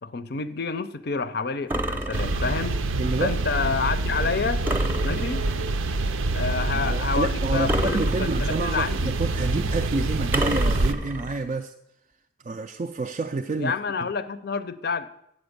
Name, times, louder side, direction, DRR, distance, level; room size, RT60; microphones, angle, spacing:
voice 1, 0.0-2.8 3.2-4.7 5.0-5.5 6.3-9.1 13.6-15.1, left 5 dB, 50° left, 14 dB, 0.5 m, -29 dB
sound 1, 1.7-2.8 4.7-5.7 7.7-8.8 10.3-11.4, right 1 dB, 10° right, 0.7 m, -29 dB
sound 2, 2.1-10.9, right 2 dB, 85° right, 0.6 m, -26 dB
voice 2, 3.0-3.4 6.7-11.7 12.4-13.8 14.0-14.1, right 3 dB, 35° right, 5 dB, 0.3 m, -29 dB
7.9 x 7.5 x 6.5 m, 0.81 s
head